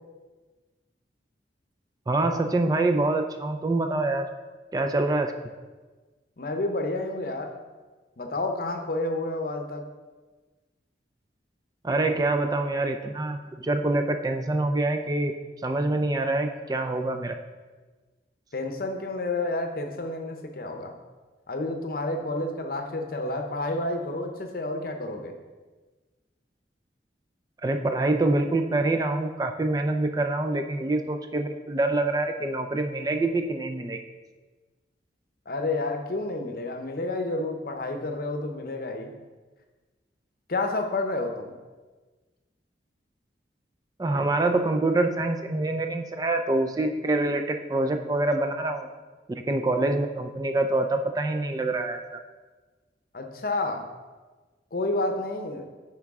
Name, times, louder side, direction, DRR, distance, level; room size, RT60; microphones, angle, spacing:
voice 1, 2.1-4.3 4.7-5.3 11.8-15.3 15.6-17.4 27.6-34.0 44.0-48.9 49.3-52.2, right 2 dB, 20° right, 5 dB, 0.3 m, -25 dB
voice 2, 6.4-7.6 8.2-9.9 12.1-12.2 18.5-21.0 21.5-25.3 35.5-39.1 40.5-41.5 53.1-53.9 54.7-55.6, left 2 dB, 55° left, 5 dB, 0.7 m, -30 dB
8.6 x 4.6 x 3.6 m, 1.3 s
head